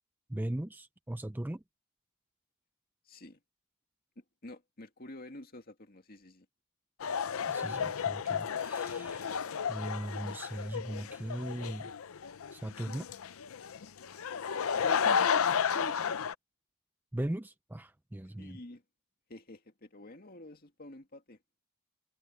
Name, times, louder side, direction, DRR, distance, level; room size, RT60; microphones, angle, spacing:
voice 1, 0.3-1.6 7.5-11.9 12.5-13.1 17.1-18.6, right 1 dB, 10° right, 0.4 m, -38 dB
voice 2, 3.1-3.4 4.2-6.5 14.8-16.2 18.4-18.8 19.3-21.4, left 1 dB, 45° left, 2.2 m, -48 dB
sound 1, 7.0-16.3, left 7 dB, 70° left, 0.5 m, -32 dB
head